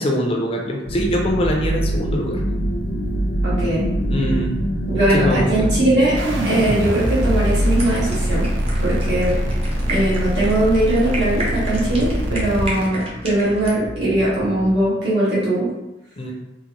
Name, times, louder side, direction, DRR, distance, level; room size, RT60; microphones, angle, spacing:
voice 1, 0.0-2.4 4.1-4.5 5.1-5.7 16.2-16.3, equal, 30° left, 1 dB, 0.4 m, -23 dB
sound 1, 0.9-14.8, equal, 85° left, 0.8 m, -27 dB
voice 2, 3.4-3.9 4.9-6.2 6.4-8.5 8.8-9.3 9.9-15.7, right 1 dB, 70° right, -8 dB, 1.4 m, -20 dB
sound 2, 6.2-12.9, equal, 85° right, 0.5 m, -22 dB
sound 3, 7.5-13.8, right 1 dB, 35° right, 0.6 m, -33 dB
3.6 x 2.0 x 2.9 m, 0.99 s
head